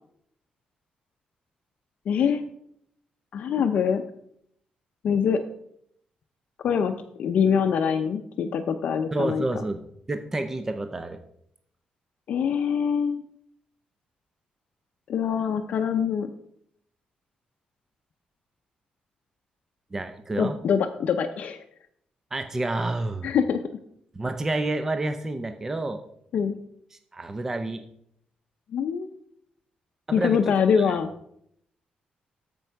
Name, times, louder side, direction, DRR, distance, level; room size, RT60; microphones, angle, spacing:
voice 1, 2.1-2.4 3.3-4.0 5.0-5.4 6.6-6.9 7.2-9.4 12.3-13.2 15.1-16.3 20.4-21.6 23.2-23.6 26.3-26.6 28.7-29.1 30.1-31.1, left 7 dB, 55° left, 6 dB, 0.6 m, -24 dB
voice 2, 9.1-9.8 10.1-11.2 19.9-20.5 22.3-23.3 24.2-26.0 27.1-27.8 30.1-30.9, right 2 dB, 15° right, 8 dB, 0.5 m, -29 dB
13.5 x 5.3 x 4.6 m, 0.72 s
wide cardioid pair, 175°, 3 cm